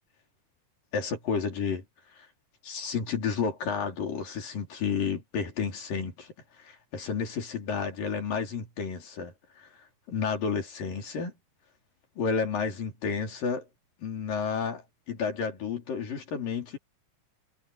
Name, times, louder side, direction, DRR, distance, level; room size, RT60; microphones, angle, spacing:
voice 1, 0.9-1.9 2.2-2.3 2.6-6.3 6.6-9.7 10.1-11.3 12.2-13.7 14.0-16.8, left 5 dB, 85° left, 6.1 m, -31 dB
omnidirectional pair, 3.8 m